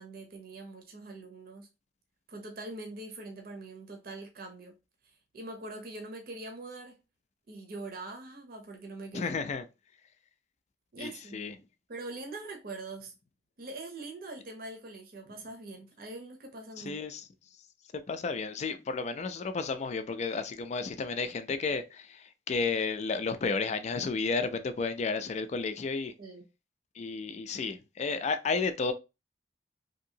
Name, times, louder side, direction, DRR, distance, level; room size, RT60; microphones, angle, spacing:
voice 1, 0.0-1.7 2.3-4.7 5.3-7.0 7.5-9.3 10.9-11.4 11.9-13.1 13.6-17.0 26.2-26.5, right 2 dB, 55° right, 0.7 m, -43 dB
voice 2, 9.1-9.6 11.0-11.5 16.8-17.3 18.1-26.1 27.0-28.9, left 4 dB, 40° left, 0.4 m, -32 dB
2.8 x 2.7 x 2.7 m
head